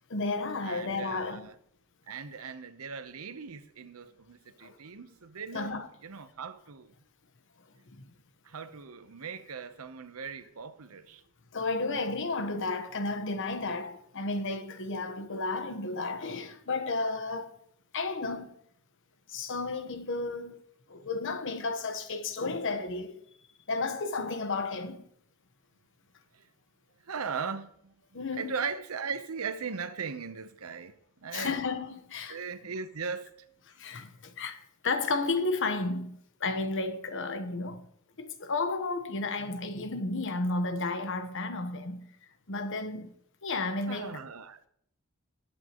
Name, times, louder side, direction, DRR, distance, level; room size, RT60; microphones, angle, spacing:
voice 1, 0.1-1.5 4.6-4.8 5.5-5.9 7.9-8.1 11.5-17.5 17.9-18.5 19.3-20.6 20.9-23.2 23.7-25.1 28.1-28.5 31.3-32.4 33.7-37.9 38.2-42.1 42.5-43.1 43.4-44.2, left 3 dB, 60° left, 1.1 m, -33 dB
voice 2, 0.6-1.5 2.1-6.9 8.4-11.2 26.3-26.4 27.0-27.9 28.4-31.6 32.3-33.3 43.9-44.7, right 5 dB, 80° right, 0.8 m, -38 dB
19.5 x 8.6 x 3.0 m
head